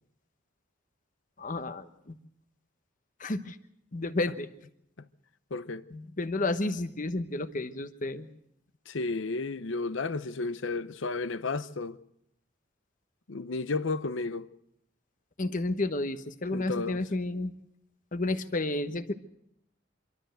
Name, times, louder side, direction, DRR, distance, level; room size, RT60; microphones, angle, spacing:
voice 1, 1.4-2.2 3.2-3.6 3.9-4.5 5.9-8.3 15.4-17.5 18.1-19.1, left 2 dB, 40° left, 1.0 m, -31 dB
voice 2, 5.5-5.9 8.9-12.0 13.3-14.5 16.5-17.0, left 3 dB, 75° left, 0.8 m, -32 dB
26.0 x 13.0 x 7.8 m
head